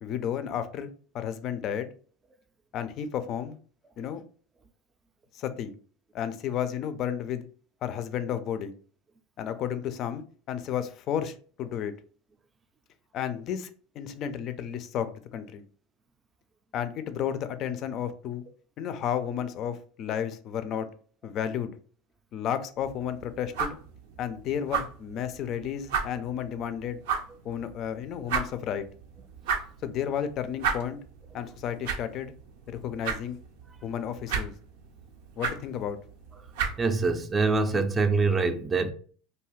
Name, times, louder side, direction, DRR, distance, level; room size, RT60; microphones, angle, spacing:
voice 1, 0.0-1.9 2.7-3.6 4.0-4.2 5.3-5.7 6.1-7.5 7.8-8.7 9.4-11.9 13.1-13.7 13.9-15.6 16.7-18.4 18.8-20.9 21.2-21.7 22.3-23.8 24.2-27.0 27.4-28.8 29.8-31.0 31.3-32.3 32.7-33.4 33.8-34.5 35.4-36.0, left 9 dB, 50° left, 0.4 m, -32 dB
sound 1, 22.8-37.6, right 6 dB, 75° right, 0.5 m, -36 dB
voice 2, 36.8-38.9, right 4 dB, 20° right, 0.4 m, -24 dB
2.6 x 2.3 x 3.1 m
supercardioid pair, 100°, 0 cm